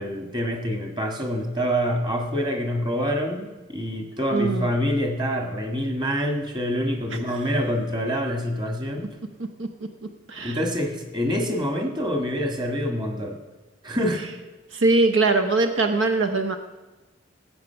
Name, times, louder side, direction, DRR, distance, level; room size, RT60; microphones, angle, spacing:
voice 1, 0.0-9.1 10.4-13.4 13.8-14.3, equal, 25° right, 4 dB, 1.8 m, -26 dB
voice 2, 4.3-4.7 7.3-7.4 9.6-9.7 10.3-10.6 14.7-16.6, right 3 dB, 75° right, 7 dB, 0.9 m, -21 dB
18.5 x 8.2 x 5.8 m, 1.2 s
head